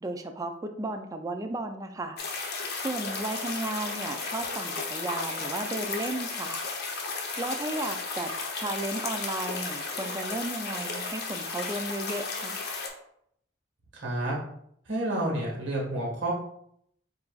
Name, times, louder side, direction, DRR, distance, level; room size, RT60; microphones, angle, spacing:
voice 1, 0.0-2.2 2.8-6.6 7.4-12.6, right 2 dB, 20° right, 6 dB, 0.3 m, -34 dB
sound 1, 2.2-12.9, left 4 dB, 60° left, 0.7 m, -34 dB
voice 2, 13.9-14.4 14.8-16.3, right 1 dB, 80° right, -2 dB, 1.6 m, -29 dB
7.5 x 2.6 x 2.4 m, 0.71 s
head